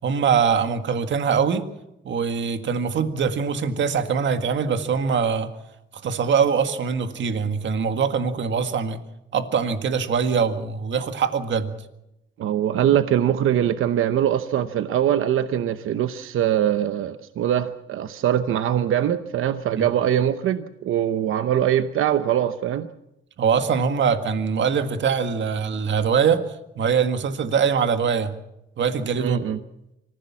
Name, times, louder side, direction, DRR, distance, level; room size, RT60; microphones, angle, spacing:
voice 1, 0.0-1.7 2.1-5.5 5.9-9.0 9.3-11.7 19.8-19.9 23.4-26.4 26.8-28.3 28.8-29.4, right 6 dB, 65° right, 8 dB, 1.8 m, -23 dB
voice 2, 12.4-22.9 29.2-29.6, right 10 dB, 90° right, 10 dB, 0.9 m, -22 dB
25.5 x 15.5 x 7.3 m, 0.89 s
cardioid pair, 135°, 21 cm